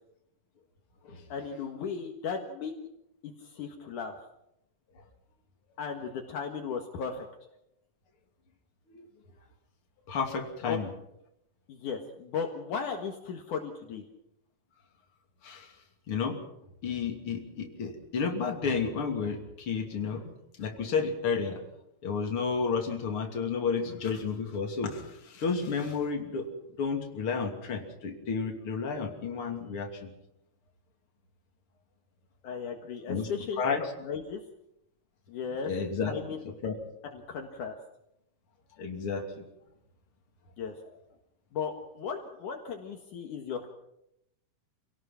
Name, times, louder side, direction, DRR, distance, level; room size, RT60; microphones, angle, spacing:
voice 1, 1.3-2.7 3.2-4.1 5.8-7.3 10.7-10.8 11.7-14.0 32.4-33.6 34.0-34.4 35.3-35.7 36.0-36.4 37.1-37.7 40.6-40.7 41.5-43.7, left 6 dB, 70° left, 3 dB, 3.1 m, -36 dB
voice 2, 10.1-10.9 15.4-15.7 16.1-16.4 16.8-20.3 20.6-21.7 22.0-26.5 26.8-30.1 33.1-33.3 33.6-33.8 35.7-36.1 36.6-36.8 38.8-39.5, left 5 dB, 40° left, 2 dB, 3.5 m, -31 dB
27.0 x 18.0 x 6.0 m, 0.79 s
omnidirectional pair, 3.9 m